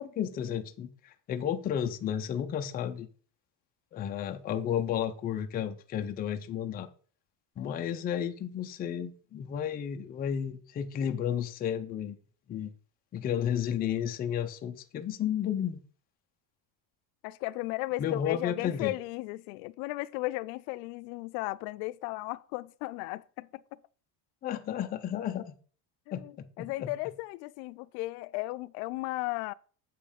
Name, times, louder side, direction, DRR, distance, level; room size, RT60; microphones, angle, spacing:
voice 1, 0.0-3.1 3.9-6.9 7.6-12.2 12.5-12.7 13.1-15.8 18.0-18.9 24.4-25.6 26.1-26.9, left 9 dB, 20° left, 0.4 m, -32 dB
voice 2, 17.2-23.8 26.1-29.5, left 20 dB, 90° left, 0.6 m, -35 dB
7.3 x 5.3 x 5.0 m
cardioid pair, 165°, 47 cm